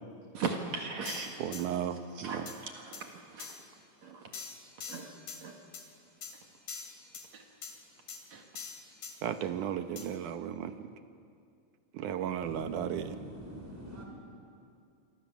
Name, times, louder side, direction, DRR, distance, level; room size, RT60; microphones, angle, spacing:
voice 1, 0.3-4.4 4.8-5.7 6.3-6.4 7.3-7.5 8.3-8.6, right 4 dB, 65° right, 2.9 m, -40 dB
sound 1, 1.1-1.6 2.5-2.6 2.9-3.0 3.4-3.6 4.3-5.4 5.7-5.9 6.2-6.3 6.7-7.3 7.6-7.7 8.1-8.2 8.6-9.1 10.0-10.1, left 6 dB, 75° left, 4.2 m, -43 dB
voice 2, 1.4-2.4 9.2-10.8 11.9-13.2, right 9 dB, 80° right, 2.6 m, -34 dB
voice 3, 12.4-14.0, equal, 5° right, 5.0 m, -46 dB
27.5 x 24.0 x 7.2 m
omnidirectional pair, 3.6 m